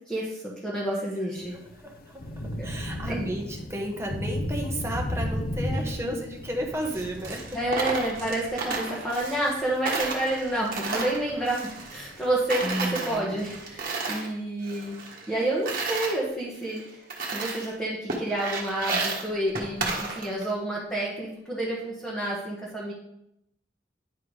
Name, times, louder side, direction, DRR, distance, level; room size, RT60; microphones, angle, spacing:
voice 1, 0.1-1.6 2.6-2.7 3.1-3.2 5.8-6.2 7.5-14.9 15.3-22.9, right 1 dB, 5° left, -6 dB, 1.2 m, -29 dB
Thunder / Rain, 1.4-13.8, left 1 dB, 55° left, 0.7 m, -36 dB
voice 2, 1.8-7.6 12.6-13.4, right 1 dB, 15° right, 1 dB, 1.1 m, -33 dB
Coin (dropping), 6.8-9.6 9.8-12.2 12.5-14.3 14.6-16.1 16.7-16.8 17.1-17.7 18.1-20.5, right 3 dB, 50° right, 1.3 m, -32 dB
9.7 x 3.5 x 4.7 m, 0.79 s
head